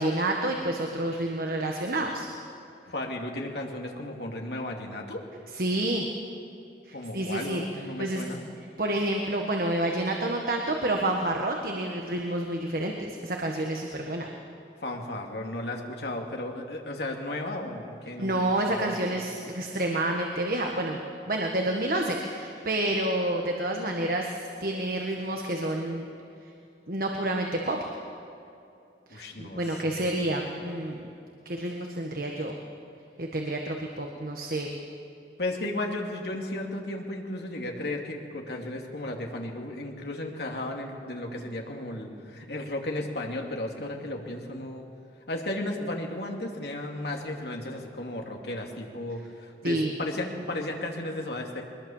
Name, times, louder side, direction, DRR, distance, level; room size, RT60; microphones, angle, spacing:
voice 1, 0.0-2.3 5.5-6.1 6.8-7.6 8.0-8.2 8.8-14.3 18.2-21.0 21.3-26.1 26.9-27.8 29.1-31.0 31.4-32.5 33.2-34.7 49.6-49.9, right 1 dB, 55° right, 2 dB, 1.6 m, -29 dB
voice 2, 2.9-5.2 6.9-8.4 14.8-19.3 29.1-30.1 35.4-44.8 45.3-51.6, left 1 dB, 65° left, 1 dB, 2.6 m, -34 dB
22.5 x 20.5 x 7.3 m, 2.6 s
head